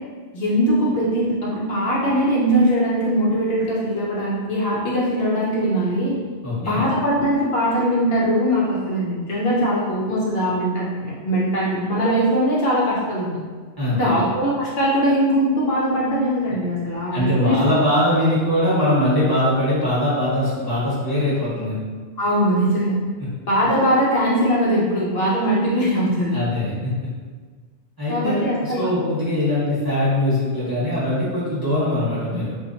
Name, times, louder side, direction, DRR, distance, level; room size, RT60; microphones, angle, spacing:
voice 1, 0.3-6.2 6.6-13.4 14.0-17.6 22.2-22.9 23.5-26.4 28.1-28.9, equal, 60° left, -6 dB, 0.9 m, -21 dB
voice 2, 6.4-6.9 13.8-14.1 17.1-21.8 26.3-27.1 28.0-32.5, left 1 dB, 20° right, -10 dB, 1.1 m, -21 dB
4.1 x 2.5 x 2.7 m, 1.5 s
omnidirectional pair, 1.2 m